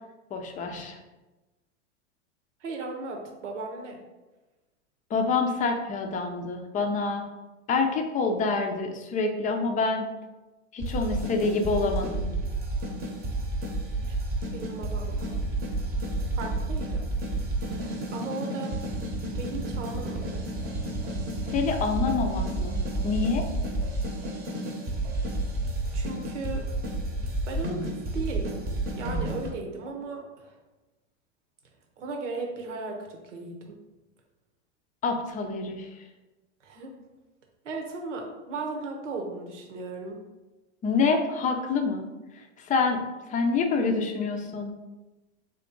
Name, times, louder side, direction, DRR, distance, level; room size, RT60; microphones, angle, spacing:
voice 1, 0.3-1.0 5.1-7.2 7.7-10.1 10.7-12.3 21.5-23.4 35.0-35.9 40.8-42.1 42.6-43.0 43.3-44.7, left 4 dB, 20° left, 4 dB, 0.5 m, -27 dB
voice 2, 2.6-4.0 14.1-14.2 14.5-15.4 16.3-17.1 17.7-18.7 19.4-20.4 25.9-26.7 27.5-28.7 28.9-30.5 32.0-33.8 36.6-36.9 37.6-40.2, right 3 dB, 80° right, 2 dB, 1.0 m, -36 dB
sound 1, 10.8-29.5, right 2 dB, 25° right, 0.9 m, -31 dB
3.5 x 2.9 x 3.8 m, 1.1 s
hypercardioid pair, 110°, 36 cm